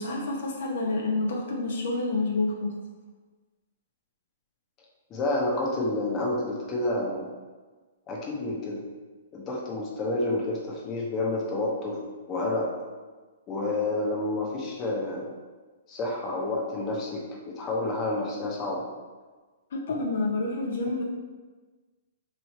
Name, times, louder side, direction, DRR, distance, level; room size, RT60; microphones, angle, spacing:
voice 1, 0.0-2.7 19.7-21.0, left 2 dB, 70° left, -1 dB, 0.6 m, -28 dB
voice 2, 5.1-7.3 8.1-8.8 9.3-12.0 12.3-12.7 13.5-15.3 15.9-18.8, left 2 dB, 25° left, -3 dB, 0.8 m, -29 dB
3.1 x 2.6 x 4.2 m, 1.3 s
hypercardioid pair, 150°, 0 cm